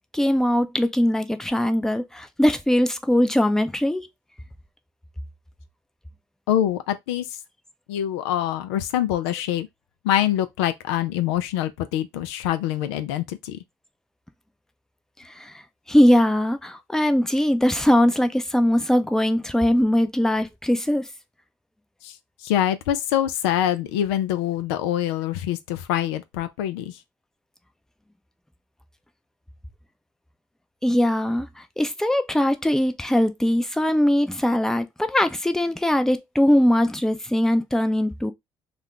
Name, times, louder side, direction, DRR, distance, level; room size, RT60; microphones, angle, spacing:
voice 1, 0.1-4.1 15.4-15.5 15.9-21.1 30.8-31.5 31.8-38.3, left 1 dB, 5° left, 0.5 m, -21 dB
voice 2, 6.5-7.2 7.9-9.7 10.0-13.6 22.0-22.1 22.4-26.9, left 11 dB, 85° left, 0.4 m, -25 dB
2.4 x 2.2 x 3.6 m
hypercardioid pair, 60°, 14 cm